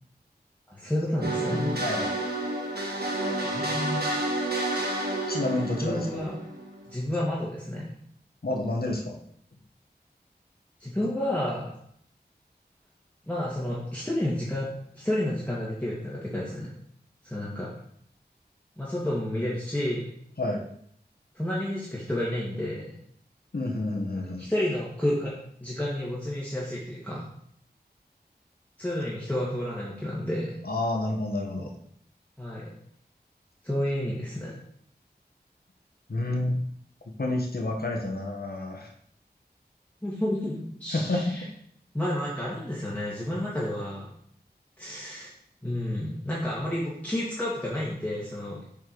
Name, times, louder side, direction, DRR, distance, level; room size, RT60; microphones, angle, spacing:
voice 1, 0.7-1.7 3.4-4.0 5.8-6.3 6.9-7.9 10.8-11.7 13.3-16.7 17.2-17.7 18.8-20.1 21.4-22.9 24.4-25.3 25.6-27.3 28.8-30.6 32.4-32.7 33.6-34.5 40.0-41.4 41.9-44.1 44.8-45.3 45.6-48.6, left 1 dB, 10° left, -7 dB, 1.8 m, -30 dB
sound 1, 1.2-7.0, right 1 dB, 70° right, 1.4 m, -30 dB
voice 2, 5.3-6.2 8.4-9.2 20.4-20.6 23.5-24.5 30.6-31.7 36.1-36.6 37.2-38.9 40.9-41.4, left 2 dB, 65° left, 1 dB, 1.4 m, -29 dB
6.9 x 4.5 x 4.6 m, 0.67 s
wide cardioid pair, 55°, 17 cm